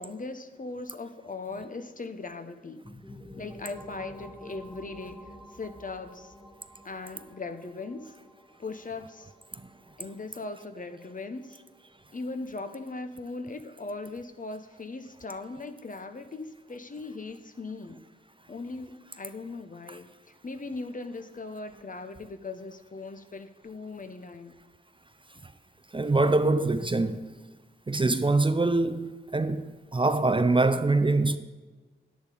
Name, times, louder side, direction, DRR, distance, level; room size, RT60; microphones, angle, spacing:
voice 1, 0.0-2.8 3.4-5.2 5.5-6.3 6.8-8.1 8.6-9.3 10.0-11.6 12.1-18.0 18.5-20.1 20.4-24.5, left 3 dB, 40° left, 0.8 m, -39 dB
sound 1, 2.8-12.4, equal, 5° left, 1.3 m, -50 dB
voice 2, 25.9-27.4 27.9-31.4, right 2 dB, 25° right, 0.5 m, -24 dB
10.5 x 10.0 x 4.9 m
cardioid pair, 55°, 21 cm